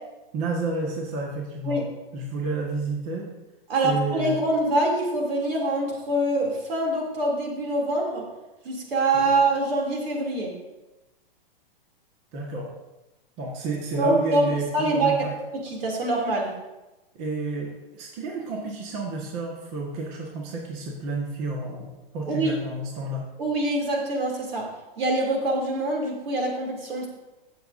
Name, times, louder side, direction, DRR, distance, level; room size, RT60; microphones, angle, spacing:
voice 1, 0.3-1.8 2.1-3.3 3.8-4.4 9.1-9.3 12.3-12.7 13.4-15.3 17.1-23.2, right 3 dB, 40° right, -1 dB, 1.6 m, -30 dB
voice 2, 3.7-8.2 8.6-10.5 13.9-15.2 15.5-16.5 22.3-22.5 23.4-24.6 25.0-27.1, right 2 dB, 80° right, -1 dB, 2.9 m, -24 dB
15.0 x 7.1 x 2.7 m, 1.1 s
hypercardioid pair, 135°, 29 cm